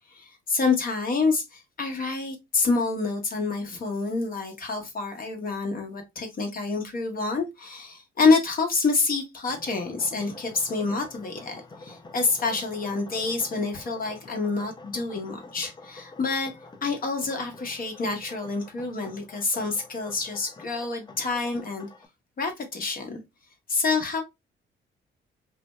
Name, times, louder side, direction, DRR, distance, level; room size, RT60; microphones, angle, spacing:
voice 1, 0.1-21.9 22.4-23.2 23.7-24.2, left 4 dB, 45° left, 1.0 m, -27 dB
sound 1, 9.5-22.1, left 3 dB, 20° left, 0.6 m, -47 dB
2.7 x 2.1 x 3.2 m
cardioid pair, 90°, 20 cm